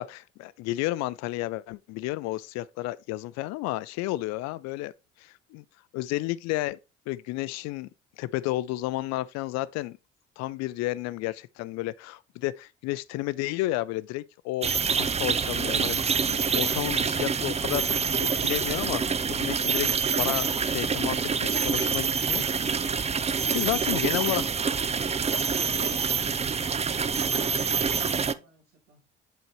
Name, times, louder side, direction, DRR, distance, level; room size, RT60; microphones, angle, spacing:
voice 1, 0.0-4.9 5.2-5.6 5.9-6.8 7.1-7.9 8.2-10.0 10.4-19.9 20.2-22.4 23.3-24.4, left 17 dB, 60° left, 0.5 m, -32 dB
sound 1, 14.6-28.3, right 6 dB, 20° right, 0.6 m, -26 dB
voice 2, 25.1-29.0, right 5 dB, 75° right, 3.5 m, -52 dB
7.8 x 5.6 x 3.1 m
hypercardioid pair, 50°, 30 cm